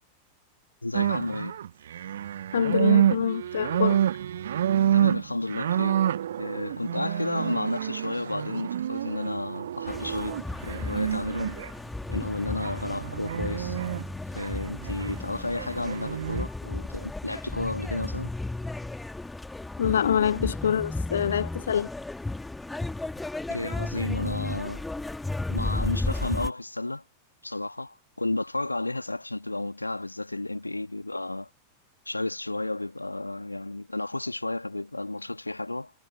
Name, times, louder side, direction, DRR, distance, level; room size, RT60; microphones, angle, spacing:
voice 1, 0.8-1.6 4.7-6.0 6.4-11.6 12.1-13.8 14.3-18.3 23.5-24.9 25.5-27.0 27.4-31.5 32.1-35.9, left 2 dB, 85° left, 1.8 m, -32 dB
sound 1, 0.9-11.7 12.6-14.1 14.4-15.2 15.6-16.4, right 10 dB, 65° right, 1.1 m, -28 dB
voice 2, 2.5-4.0 19.8-21.9, left 8 dB, 65° left, 0.9 m, -25 dB
sound 2, 9.9-26.5, left 2 dB, 5° left, 2.0 m, -34 dB
figure-of-eight pair, 90°, 0 cm